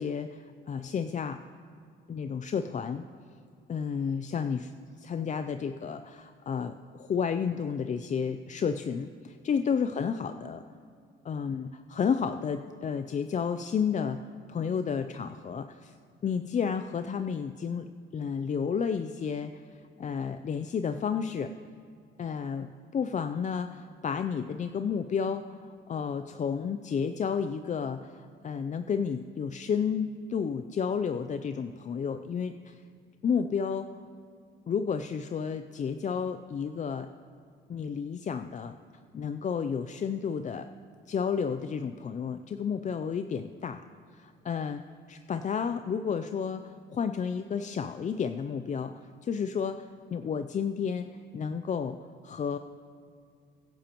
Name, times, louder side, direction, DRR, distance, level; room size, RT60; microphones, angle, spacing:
voice 1, 0.0-1.4 2.1-3.0 3.7-10.6 11.2-15.9 16.2-21.5 22.2-25.6 25.9-32.8 33.2-33.9 34.7-37.1 37.7-38.8 39.1-40.7 41.1-43.8 44.1-44.8 45.1-51.1 51.3-52.0 52.2-52.6, left 6 dB, 40° left, 9 dB, 0.4 m, -31 dB
23.5 x 10.0 x 3.0 m, 2.3 s
cardioid pair, 90°, 20 cm